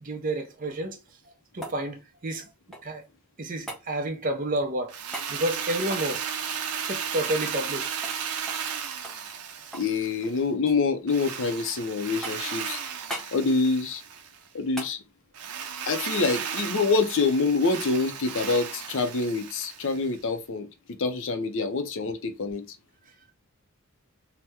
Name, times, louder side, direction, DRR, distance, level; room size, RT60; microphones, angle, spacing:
voice 1, 0.0-1.0 1.5-2.5 2.8-3.0 3.4-4.9 5.3-6.3 6.9-7.9, right 1 dB, 35° right, 0.5 m, -30 dB
sound 1, 1.0-3.1 3.7-3.9 5.1-5.3 5.8-7.8 8.0-8.2 8.5-8.7 9.0-10.0 10.2-10.8 11.3-11.8 12.2-12.6 13.1-13.3 14.8-15.0 17.3-17.4, right 1 dB, ahead, 0.6 m, -41 dB
Drill, 4.9-10.4 11.1-14.4 15.3-20.1, right 7 dB, 85° right, 0.5 m, -35 dB
voice 2, 9.7-12.8 13.3-14.0 14.5-15.0 15.9-20.7 21.0-22.6, left 4 dB, 60° left, 0.5 m, -26 dB
2.9 x 2.1 x 3.4 m
head